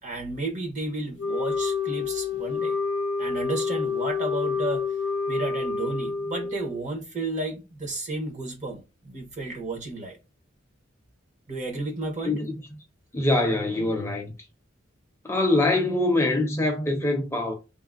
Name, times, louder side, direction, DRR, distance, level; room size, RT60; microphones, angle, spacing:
voice 1, 0.0-2.8 3.2-4.8 5.3-10.2 11.5-12.4, right 2 dB, 40° right, 0.9 m, -32 dB
Wind instrument woodwind instrument, 1.2-6.8, left 4 dB, 75° left, 0.4 m, -28 dB
voice 2, 13.1-14.3 15.2-17.5, left 2 dB, 15° left, 0.5 m, -24 dB
3.4 x 2.1 x 2.4 m
head